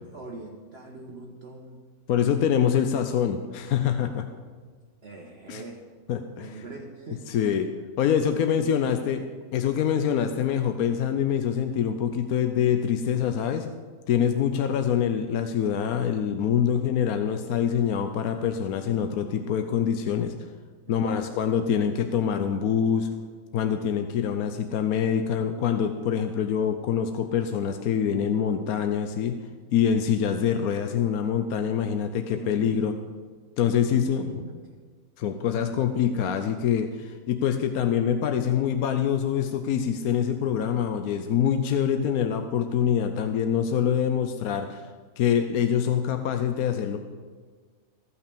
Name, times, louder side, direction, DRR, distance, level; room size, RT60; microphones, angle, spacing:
voice 1, 0.0-1.8 5.0-5.8 6.3-7.3 8.3-8.7 20.9-21.3 32.3-32.7 33.8-34.6, right 3 dB, 45° right, 0 dB, 1.3 m, -43 dB
voice 2, 2.1-4.3 5.5-5.6 6.1-6.6 7.3-7.7 8.0-9.2 9.5-13.7 14.1-20.3 20.9-23.1 23.5-29.4 29.7-32.9 33.6-34.4 35.2-44.9 45.2-47.0, left 8 dB, 75° left, 7 dB, 1.1 m, -25 dB
15.5 x 5.8 x 6.9 m, 1.5 s
omnidirectional pair, 1.6 m